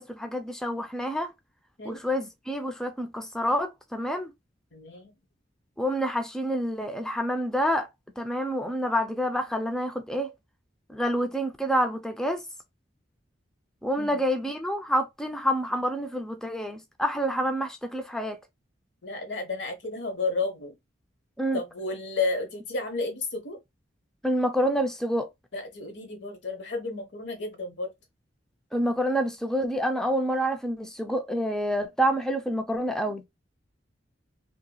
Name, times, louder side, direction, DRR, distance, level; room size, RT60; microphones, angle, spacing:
voice 1, 0.0-1.3 1.8-4.3 5.8-7.9 8.2-10.3 10.9-12.4 13.8-18.4 21.4-21.6 24.2-25.3 28.7-33.2, equal, 5° left, 0.4 m, -28 dB
voice 2, 4.7-5.1 14.0-14.2 19.0-20.7 21.5-23.6 25.5-27.9, left 3 dB, 80° left, 0.9 m, -32 dB
2.8 x 2.7 x 2.3 m
head